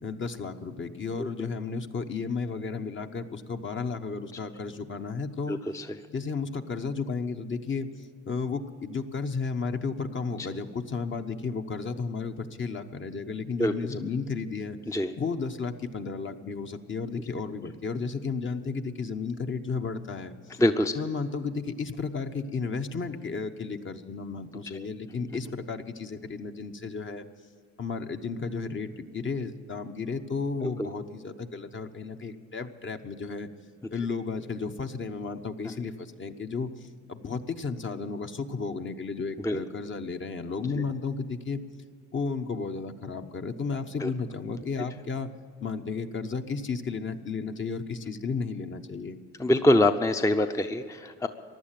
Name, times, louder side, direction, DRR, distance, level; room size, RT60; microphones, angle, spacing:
voice 1, 0.0-5.6 6.1-14.8 15.1-20.5 20.9-27.2 27.8-33.5 33.9-41.6 42.1-45.3 45.6-49.2, left 4 dB, 40° left, 7 dB, 1.0 m, -33 dB
voice 2, 5.5-5.9 13.6-13.7 14.9-15.1 20.6-20.9 24.7-24.9 30.6-30.9 39.4-39.6 40.8-40.9 44.0-44.1 49.4-51.3, left 1 dB, 10° left, 8 dB, 0.6 m, -24 dB
15.5 x 11.0 x 7.6 m, 2.2 s
cardioid pair, 90°, 30 cm